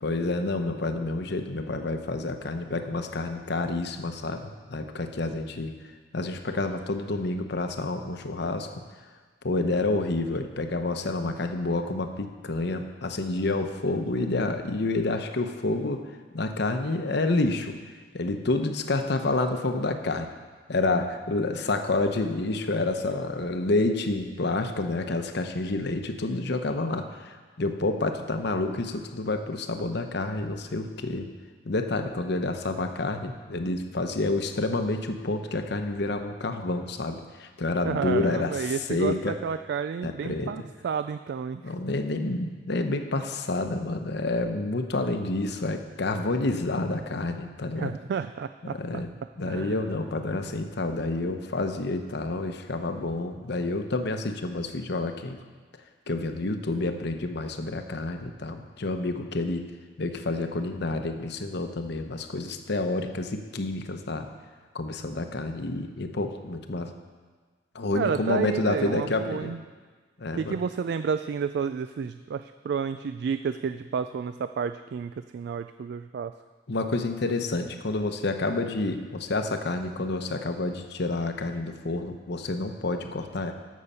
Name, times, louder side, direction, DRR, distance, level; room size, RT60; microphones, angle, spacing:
voice 1, 0.0-5.7 6.1-8.8 9.4-16.0 16.3-17.8 18.1-20.3 20.7-31.3 31.6-39.4 40.0-40.5 41.6-48.0 48.6-49.1 49.4-55.4 56.1-59.7 60.0-64.3 64.7-66.9 67.7-69.6 70.2-70.6 76.7-83.5, left 2 dB, 65° left, 6 dB, 0.9 m, -29 dB
voice 2, 37.8-41.7 47.8-49.0 49.5-49.7 67.9-69.6 70.4-76.3, right 6 dB, 60° right, 11 dB, 0.3 m, -31 dB
13.5 x 6.5 x 5.6 m, 1.5 s
head